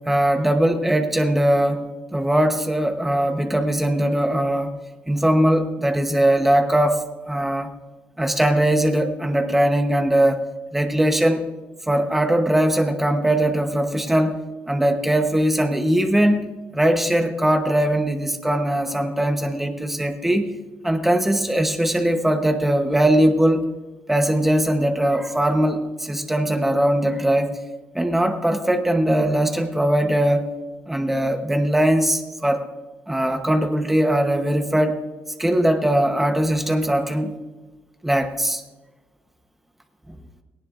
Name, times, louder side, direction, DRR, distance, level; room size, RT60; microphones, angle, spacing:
voice 1, 0.0-4.7 5.1-7.7 8.2-10.4 10.7-11.5 11.9-14.4 14.7-16.5 16.7-20.4 20.8-23.7 24.1-27.6 27.9-30.5 30.9-32.6 33.1-35.0 35.4-37.4 38.0-38.6, right 1 dB, 5° right, 5 dB, 0.9 m, -20 dB
18.5 x 17.5 x 2.5 m, 1.2 s
cardioid pair, 180°, 4 cm